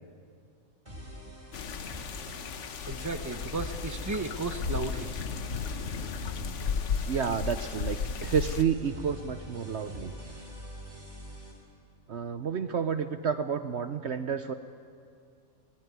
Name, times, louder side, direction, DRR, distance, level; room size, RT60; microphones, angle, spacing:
sound 1, 0.9-11.5, equal, 30° right, 5.9 m, -44 dB
sound 2, 1.5-8.6, left 6 dB, 60° left, 1.2 m, -34 dB
voice 1, 2.9-5.1, right 3 dB, 15° right, 7 dB, 1.0 m, -34 dB
voice 2, 7.1-10.1 12.1-14.5, right 7 dB, 55° right, 10 dB, 1.0 m, -30 dB
23.5 x 20.0 x 9.5 m, 2.3 s
omnidirectional pair, 1.5 m